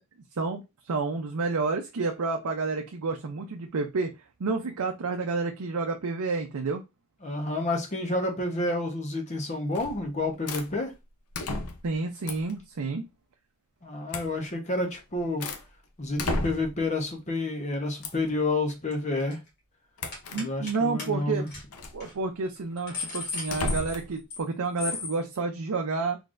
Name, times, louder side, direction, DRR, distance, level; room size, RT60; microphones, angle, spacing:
voice 1, 0.4-4.1 4.4-6.8 11.8-13.0 20.3-21.4 21.9-26.2, right 4 dB, 75° right, 0.5 m, -30 dB
voice 2, 7.2-10.9 13.8-15.5 16.0-19.4 20.3-21.5, left 2 dB, 30° left, 0.9 m, -29 dB
sound 1, 9.7-10.1 10.5-10.7 11.3-11.9 12.3-12.6 14.1-14.3 14.9-15.7 16.2-16.8 18.0-18.3 20.0-20.4 21.7-22.0 23.5-24.1, left 2 dB, 80° left, 0.6 m, -33 dB
sound 2, 18.7-18.9 19.2-19.5 20.1-20.7 21.0-21.1 21.5-21.6 22.0-22.1 22.6-24.5 24.8-25.1, left 4 dB, 50° left, 1.9 m, -36 dB
3.9 x 3.2 x 2.5 m
head